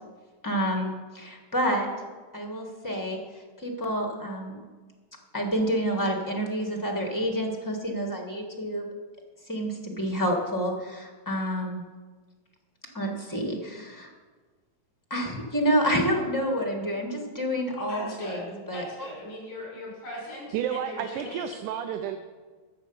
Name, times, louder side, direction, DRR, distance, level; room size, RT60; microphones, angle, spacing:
voice 1, 0.4-1.9 2.3-3.2 3.6-4.6 5.3-8.8 9.5-11.8 12.9-14.1 15.1-18.4 18.7-18.8, equal, 25° left, 1 dB, 0.4 m, -28 dB
voice 2, 17.7-18.4 18.7-21.5, left 1 dB, 80° left, -4 dB, 6.5 m, -39 dB
voice 3, 20.5-22.2, right 9 dB, 90° right, 7 dB, 2.2 m, -31 dB
13.0 x 6.9 x 7.1 m, 1.4 s
omnidirectional pair, 3.5 m